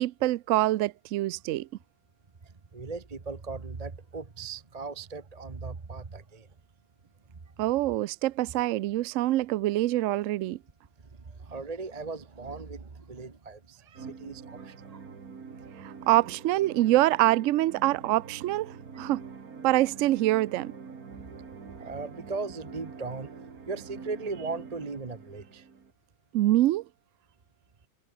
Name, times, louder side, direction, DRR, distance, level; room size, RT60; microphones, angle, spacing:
voice 1, 0.0-1.7 7.6-10.6 15.8-19.3 19.6-20.7 26.3-26.8, right 16 dB, 85° right, 0.6 m, -25 dB
voice 2, 2.4-6.5 11.2-15.0 21.1-25.7, right 4 dB, 25° right, 1.1 m, -38 dB
sound 1, 13.9-25.9, right 5 dB, 55° right, 2.5 m, -45 dB
omnidirectional pair, 1.9 m